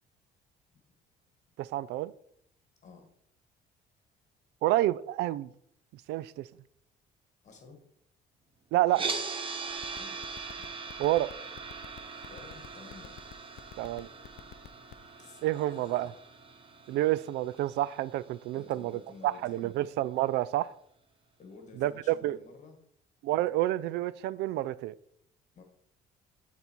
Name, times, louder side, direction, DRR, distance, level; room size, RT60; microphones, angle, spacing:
voice 1, 1.6-2.1 4.6-5.5 5.9-6.5 8.7-9.0 11.0-11.3 13.8-14.1 15.4-16.1 16.9-20.7 21.8-22.4 23.2-24.9, right 15 dB, 85° right, 19 dB, 0.4 m, -29 dB
voice 2, 7.4-7.8 9.9-10.2 10.6-10.7 12.3-13.2 13.5-13.7 14.5-14.6 14.9-16.1 16.7-17.0 18.5-19.7 21.4-22.8 25.6-25.7, left 4 dB, 45° left, 4 dB, 1.7 m, -52 dB
sound 1, 8.9-19.0, right 4 dB, 30° right, 1.2 m, -41 dB
sound 2, 9.7-15.1, left 14 dB, 70° left, 0.6 m, -47 dB
12.0 x 4.1 x 4.5 m, 0.69 s
cardioid pair, 110°, 17 cm